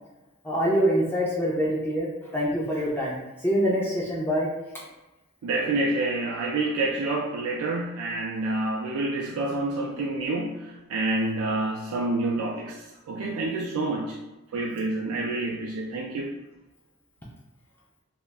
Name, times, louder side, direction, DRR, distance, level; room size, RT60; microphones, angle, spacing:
voice 1, 0.4-4.5 4.7-4.8, equal, 10° left, -4 dB, 0.3 m, -25 dB
voice 2, 5.4-14.2 14.5-16.3, right 2 dB, 80° right, -1 dB, 0.3 m, -28 dB
2.3 x 2.0 x 3.4 m, 1.0 s
head